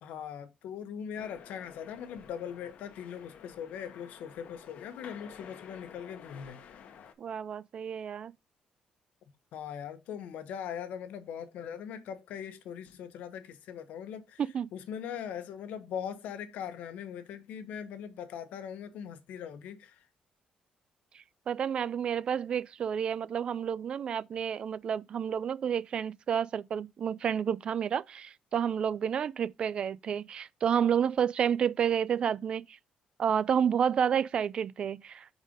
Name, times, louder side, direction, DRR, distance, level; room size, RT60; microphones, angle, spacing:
voice 1, 0.0-6.6 9.5-14.4 14.7-20.0, left 8 dB, 90° left, 0.9 m, -40 dB
sound 1, 1.2-7.1, left 8 dB, 60° left, 0.8 m, -51 dB
voice 2, 7.2-8.3 14.4-14.7 21.1-32.8 33.2-35.3, right 8 dB, 40° right, 0.3 m, -30 dB
5.0 x 4.1 x 5.1 m
cardioid pair, 170°, 3 cm